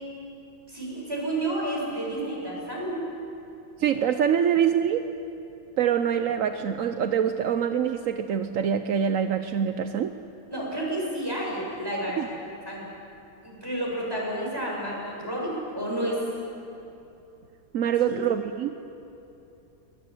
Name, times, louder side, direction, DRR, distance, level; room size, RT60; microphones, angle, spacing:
voice 1, 0.7-3.0 10.5-12.2 12.7-12.8 13.4-16.2 18.1-18.2, right 1 dB, 10° right, -3 dB, 7.7 m, -30 dB
voice 2, 3.8-5.1 5.8-10.1 12.2-12.3 17.7-18.7, right 8 dB, 60° right, 8 dB, 0.8 m, -25 dB
23.5 x 21.0 x 9.0 m, 2.9 s
omnidirectional pair, 2.2 m